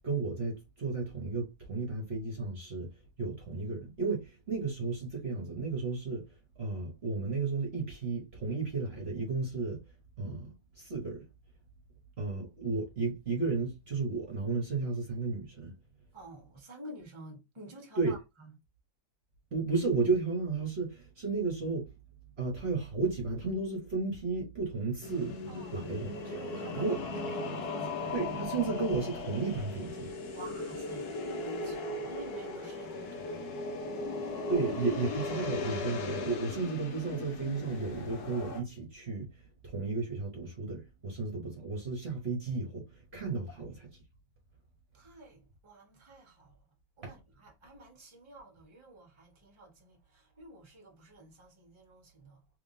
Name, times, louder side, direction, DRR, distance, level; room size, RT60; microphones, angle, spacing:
voice 1, 0.0-2.9 3.2-9.8 10.2-11.2 12.2-15.7 18.0-18.1 19.5-21.9 22.4-25.4 25.7-26.2 26.7-27.0 28.1-30.1 34.5-43.9 47.0-47.1, right 4 dB, 45° right, 1.2 m, -33 dB
voice 2, 16.1-18.5 25.5-25.9 26.2-27.0 27.3-28.1 30.3-33.5 44.9-46.6 47.0-52.4, right 1 dB, 20° right, 1.1 m, -50 dB
sound 1, 25.0-38.6, left 3 dB, 80° left, 1.4 m, -37 dB
3.6 x 3.3 x 2.6 m
omnidirectional pair, 1.6 m